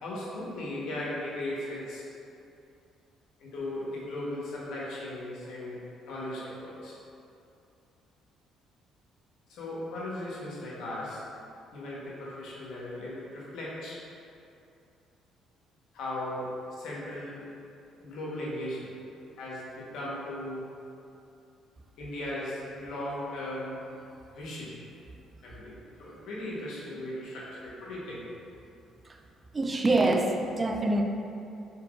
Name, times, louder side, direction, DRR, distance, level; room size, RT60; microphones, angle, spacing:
voice 1, 0.0-2.0 3.4-5.8 6.0-6.9 9.5-11.2 11.7-14.0 15.9-16.5 16.8-17.5 18.0-19.0 19.3-20.7 22.0-23.8 24.3-24.7 25.4-28.2, left 1 dB, 70° left, -6 dB, 1.1 m, -37 dB
voice 2, 29.5-31.0, right 2 dB, 25° right, 3 dB, 0.4 m, -25 dB
4.5 x 3.9 x 2.5 m, 2.6 s
supercardioid pair, 75°, 0 cm